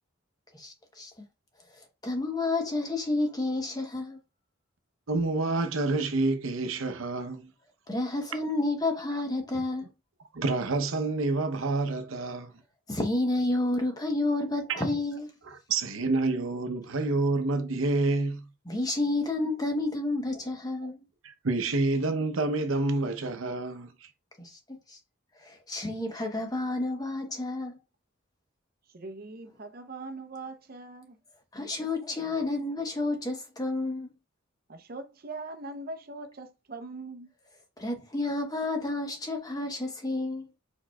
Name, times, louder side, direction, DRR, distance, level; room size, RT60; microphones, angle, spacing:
voice 1, 0.5-1.2 2.0-4.2 7.9-9.9 12.9-15.3 18.7-21.0 24.4-25.0 25.4-27.8 31.5-34.1 37.8-40.4, left 2 dB, 20° left, 0.9 m, -30 dB
voice 2, 5.1-7.5 10.3-12.5 14.7-14.8 15.5-18.5 20.8-20.9 21.2-24.1, right 3 dB, 80° right, 0.8 m, -28 dB
voice 3, 28.9-31.2 34.7-37.3, right 3 dB, 45° right, 0.7 m, -41 dB
4.8 x 4.6 x 2.3 m
head